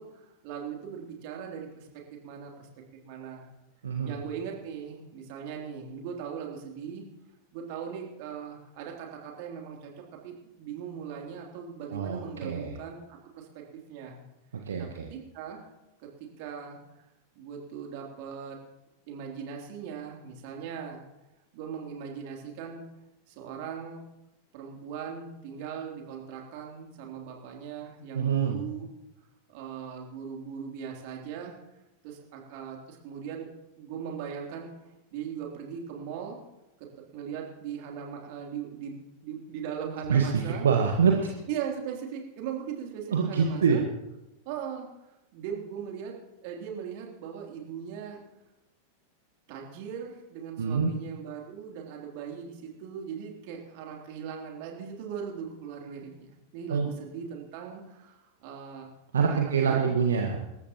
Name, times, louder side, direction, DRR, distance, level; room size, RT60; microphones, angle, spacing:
voice 1, 0.0-2.7 3.0-3.5 4.0-7.0 7.5-13.6 13.9-14.2 14.8-15.7 16.0-16.1 16.4-16.8 17.3-18.6 19.1-21.0 21.5-22.8 23.3-24.0 24.5-28.9 29.5-31.6 32.0-33.5 33.8-34.7 35.1-36.4 36.8-40.7 41.5-43.8 44.4-46.2 46.4-48.2 49.5-58.9 59.3-60.0, right 7 dB, 45° right, 0 dB, 3.2 m, -39 dB
voice 2, 11.9-12.8 14.7-15.1 28.1-28.6 40.1-40.3 40.6-41.3 43.1-43.8 50.6-50.9 56.7-56.9 59.1-60.4, right 6 dB, 65° right, 2 dB, 1.4 m, -25 dB
26.0 x 14.0 x 3.0 m, 0.93 s
figure-of-eight pair, 90°, 0 cm